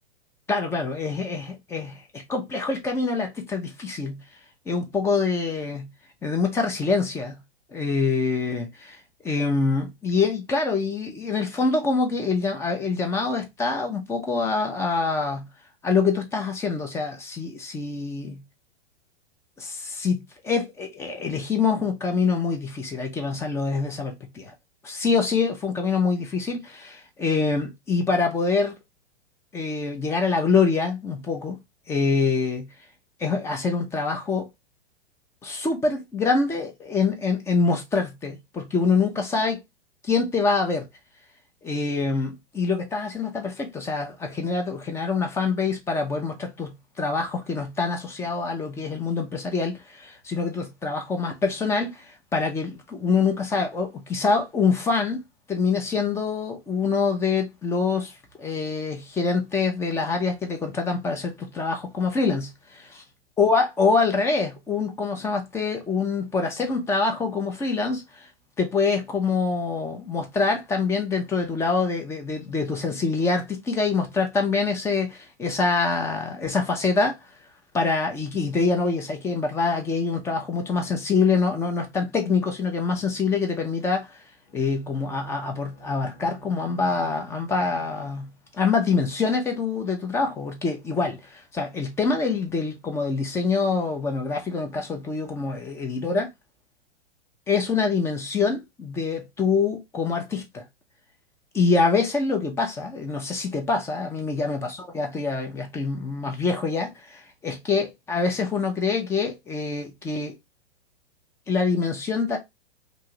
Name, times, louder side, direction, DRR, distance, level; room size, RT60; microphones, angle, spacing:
voice 1, 0.5-4.2 4.7-5.9 6.2-7.4 7.7-15.5 15.8-18.4 19.6-24.5 24.8-28.7 29.5-31.6 31.9-32.7 33.2-34.5 35.4-39.6 40.0-40.9 41.6-55.2 55.5-62.9 63.4-68.3 68.6-77.2 77.7-84.2 84.5-96.3 97.5-100.6 101.5-104.7 104.9-110.3 111.5-112.4, left 4 dB, 10° left, 0.4 m, -25 dB
Bowed string instrument, 84.4-88.5, right 6 dB, 75° left, 1.4 m, -48 dB
2.6 x 2.5 x 2.8 m
figure-of-eight pair, 110°, 31 cm